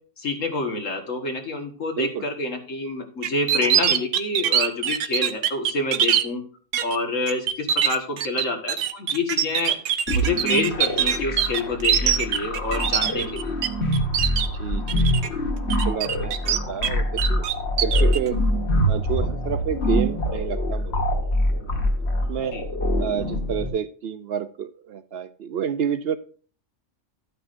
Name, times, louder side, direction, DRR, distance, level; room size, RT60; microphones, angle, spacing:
voice 1, 0.2-6.4 6.8-9.8 10.1-13.5 22.5-22.6, left 2 dB, 90° left, 4 dB, 1.9 m, -27 dB
sound 1, 3.2-6.2 6.7-7.0 7.3-13.7 13.9-14.5 14.9-15.3 15.7-16.9 17.2-18.2, right 9 dB, 80° right, 1.0 m, -22 dB
sound 2, 10.1-23.7, equal, 60° left, 1.8 m, -25 dB
voice 2, 14.5-15.6 15.8-17.4 17.8-18.4 18.9-21.1 22.3-22.6 23.0-26.2, right 8 dB, 65° right, 12 dB, 0.7 m, -29 dB
12.5 x 9.0 x 2.6 m, 0.43 s
omnidirectional pair, 1.3 m